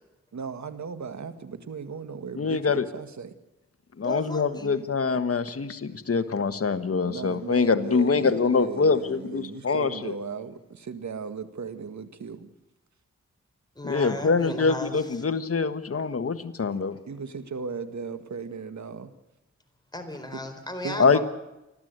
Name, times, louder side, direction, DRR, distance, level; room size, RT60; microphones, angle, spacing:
voice 1, 0.3-3.4 7.0-12.5 16.7-19.1 20.8-21.2, right 5 dB, 70° right, 10 dB, 1.7 m, -37 dB
voice 2, 2.4-2.8 4.0-10.1 13.8-17.0 21.0-21.2, left 4 dB, 50° left, 9 dB, 1.5 m, -24 dB
voice 3, 4.0-4.7 13.8-15.2 19.9-21.2, left 1 dB, 15° left, 5 dB, 4.4 m, -35 dB
29.5 x 12.5 x 8.1 m, 0.94 s
cardioid pair, 55°, 29 cm